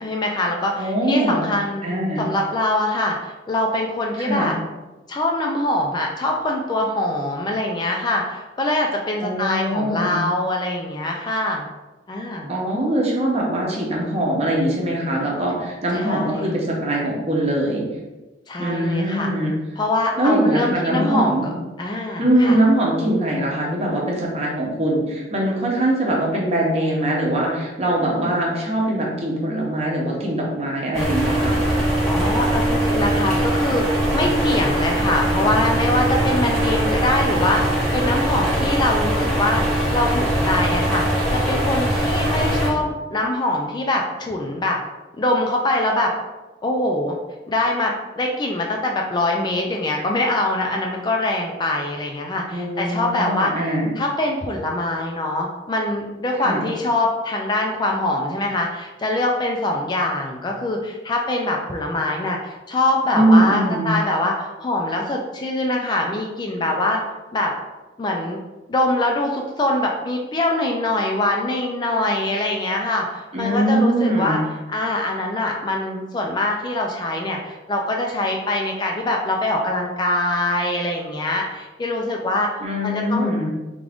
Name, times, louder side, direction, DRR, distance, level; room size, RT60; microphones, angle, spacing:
voice 1, 0.0-1.8 2.2-4.6 5.1-11.7 12.1-12.5 15.9-16.6 18.5-19.3 19.8-21.4 21.8-22.6 32.1-44.8 45.2-46.1 46.6-47.2 47.5-67.0 67.3-67.5 68.0-68.4 68.7-74.4 74.7-82.5 82.8-83.3, left 1 dB, 25° left, 1 dB, 0.3 m, -23 dB
voice 2, 0.8-1.4 1.8-2.2 4.2-4.5 9.2-10.2 12.5-17.8 18.6-19.5 20.2-21.5 22.2-31.6 52.5-53.9 56.4-56.6 63.1-63.9 73.3-74.4 82.6-83.5, right 1 dB, 35° right, -2 dB, 0.8 m, -22 dB
sound 1, 30.9-42.7, right 1 dB, 5° left, 1.0 m, -21 dB
3.5 x 2.5 x 3.4 m, 1.1 s
head